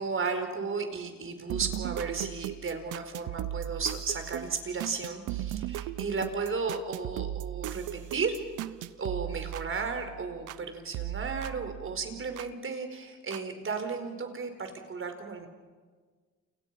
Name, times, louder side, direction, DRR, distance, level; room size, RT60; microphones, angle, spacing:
voice 1, 0.0-8.4 9.0-15.5, right 4 dB, 45° right, 6 dB, 4.7 m, -34 dB
sound 1, 1.5-10.6 10.9-12.5 13.3-13.4, right 13 dB, 90° right, 0.8 m, -37 dB
29.5 x 29.0 x 5.9 m, 1.5 s
cardioid pair, 90°, 30 cm